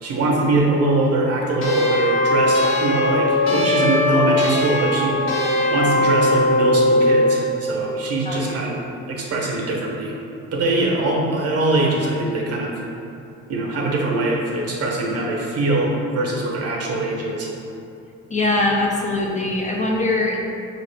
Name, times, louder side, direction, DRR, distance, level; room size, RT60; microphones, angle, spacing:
voice 1, 0.0-8.8 9.1-10.1 10.5-12.7 13.5-17.5, right 2 dB, 55° right, -2 dB, 0.8 m, -22 dB
sound 1, 1.6-7.3, left 1 dB, 45° left, 1.1 m, -19 dB
voice 2, 8.3-8.6 18.3-20.4, left 2 dB, 25° left, -1 dB, 0.4 m, -22 dB
4.5 x 2.5 x 3.2 m, 2.8 s
cardioid pair, 90°, 30 cm